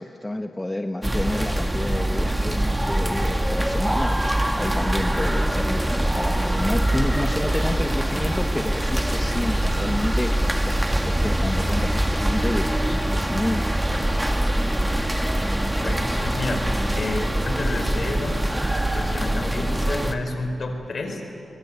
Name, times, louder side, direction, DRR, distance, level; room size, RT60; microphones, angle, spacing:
voice 1, 0.0-5.8 6.2-10.8 11.0-13.8, left 1 dB, 20° left, 5 dB, 1.2 m, -29 dB
sound 1, 1.0-20.1, right 1 dB, 10° right, 2.1 m, -23 dB
voice 2, 15.6-18.5 18.9-21.3, left 2 dB, 60° left, 5 dB, 4.6 m, -30 dB
22.5 x 22.5 x 9.8 m, 2.9 s
cardioid pair, 55°, 0 cm